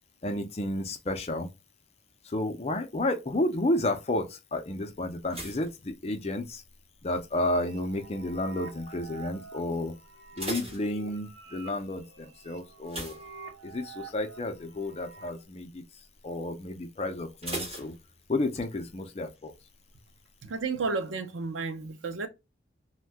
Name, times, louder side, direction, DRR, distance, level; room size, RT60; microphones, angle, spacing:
voice 1, 0.2-1.5 2.3-6.6 7.0-9.9 10.4-13.2 13.6-15.8 16.2-17.9 18.3-19.5, left 1 dB, 35° left, 0.5 m, -31 dB
sound 1, 5.3-6.8 7.0-7.5 8.1-8.5 8.8-8.9 9.3-9.4 10.0-11.6 12.8-14.0 14.3-14.6 15.0-15.1 17.4-18.6 18.9-19.0, right 1 dB, 30° right, 1.4 m, -39 dB
sound 2, 7.4-15.4, right 4 dB, 60° right, 1.1 m, -48 dB
voice 2, 20.4-22.3, right 4 dB, 85° right, 0.5 m, -32 dB
2.6 x 2.2 x 3.3 m
head